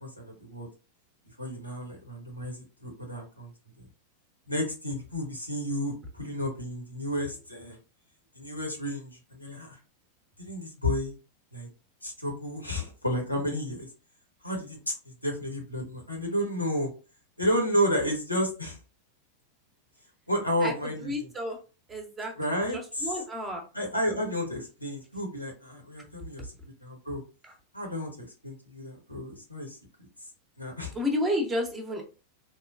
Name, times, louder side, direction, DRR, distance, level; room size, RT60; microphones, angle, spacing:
voice 1, 0.0-0.7 1.4-3.5 3.8-3.9 4.5-7.8 8.3-9.8 10.4-11.2 11.5-11.7 12.0-13.9 14.4-15.0 15.2-16.9 17.4-18.8 20.3-21.3 22.3-23.2 23.7-26.5 26.8-27.2 27.7-29.8 30.6-30.9, equal, 90° left, 1 dB, 0.9 m, -31 dB
voice 2, 20.6-21.6 21.9-22.3 22.7-23.6 26.4-26.5 27.4-27.5 30.9-32.0, left 1 dB, 15° right, 3 dB, 0.7 m, -31 dB
2.9 x 2.2 x 2.3 m, 0.34 s
figure-of-eight pair, 90°, 0 cm